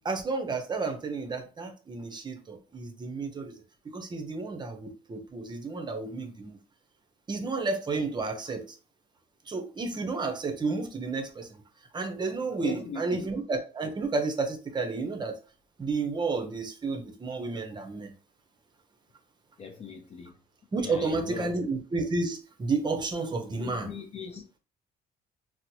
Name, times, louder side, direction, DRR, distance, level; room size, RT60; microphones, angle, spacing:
voice 1, 0.0-3.6 3.8-6.5 7.3-8.8 9.5-11.5 11.9-15.4 15.8-18.1 20.7-23.9, right 3 dB, 25° right, 0.7 m, -31 dB
voice 2, 12.6-13.3 19.6-20.4 20.8-21.5 23.6-24.6, left 5 dB, 35° left, 0.5 m, -40 dB
4.3 x 2.0 x 2.7 m
cardioid pair, 110°, 17 cm